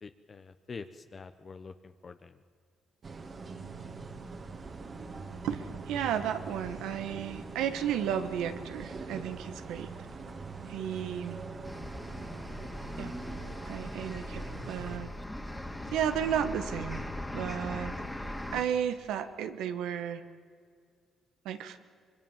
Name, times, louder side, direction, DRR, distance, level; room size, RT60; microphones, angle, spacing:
voice 1, 0.0-2.4, left 4 dB, 40° left, 8 dB, 0.9 m, -46 dB
sound 1, 3.0-15.0, right 4 dB, 40° right, 2.1 m, -43 dB
voice 2, 5.4-9.9 10.7-11.4 13.0-13.1 13.7-15.1 15.9-17.1 17.3-18.0 18.5-20.2 21.4-21.8, right 9 dB, 90° right, 9 dB, 1.4 m, -33 dB
sound 2, 11.6-18.6, left 1 dB, 10° left, 2.2 m, -39 dB
24.5 x 22.0 x 7.4 m, 2.1 s
cardioid pair, 90°, 0 cm